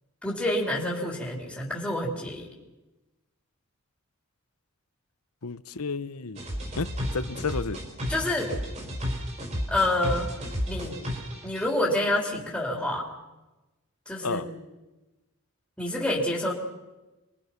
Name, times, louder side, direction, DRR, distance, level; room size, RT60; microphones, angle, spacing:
voice 1, 0.2-2.5 8.1-8.5 9.7-10.3 10.7-11.0 11.4-13.1 14.1-14.4 15.8-16.5, left 1 dB, 5° left, -3 dB, 3.7 m, -28 dB
voice 2, 5.4-6.4 6.8-7.8 14.2-14.5, left 4 dB, 85° left, 14 dB, 1.0 m, -32 dB
sound 1, 6.4-11.7, equal, 30° right, 4.9 m, -33 dB
27.5 x 23.0 x 6.0 m, 1.1 s
head